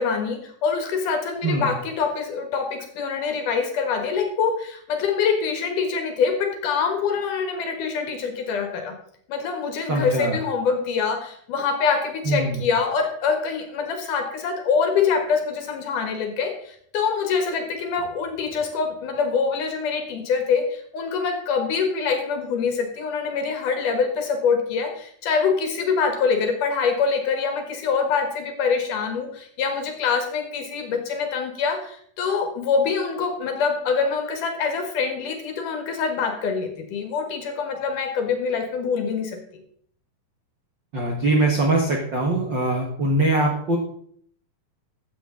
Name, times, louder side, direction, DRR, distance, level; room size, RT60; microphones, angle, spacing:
voice 1, 0.0-8.9 9.3-39.6, left 5 dB, 60° left, 5 dB, 2.7 m, -25 dB
voice 2, 9.9-10.4 12.2-12.6 40.9-43.8, right 2 dB, 70° right, 1 dB, 1.0 m, -22 dB
14.0 x 8.3 x 3.7 m, 0.63 s
omnidirectional pair, 4.5 m